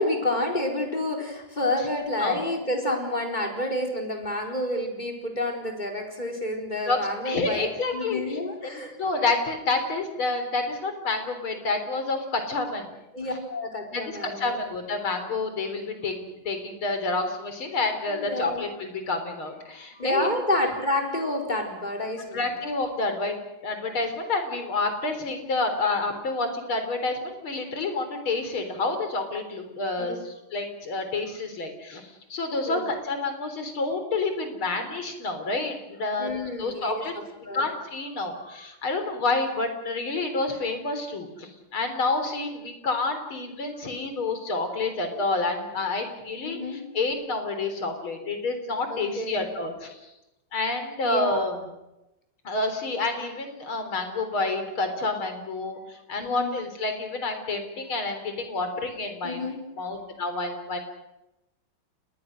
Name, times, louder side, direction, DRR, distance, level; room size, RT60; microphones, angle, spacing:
voice 1, 0.0-7.7 7.9-8.9 13.1-14.6 18.1-18.7 20.0-22.4 30.0-30.2 32.6-32.9 36.2-37.0 37.4-37.6 46.4-46.8 48.9-49.4 51.0-51.4 56.2-56.5 59.2-59.6, left 1 dB, 20° left, 2 dB, 4.5 m, -29 dB
voice 2, 7.3-12.9 13.9-20.3 22.3-23.3 23.6-36.3 36.6-37.1 37.5-50.1 50.5-51.6 52.4-59.4 59.8-60.8, left 3 dB, 75° left, 7 dB, 4.4 m, -29 dB
29.5 x 20.5 x 6.5 m, 0.93 s
omnidirectional pair, 2.3 m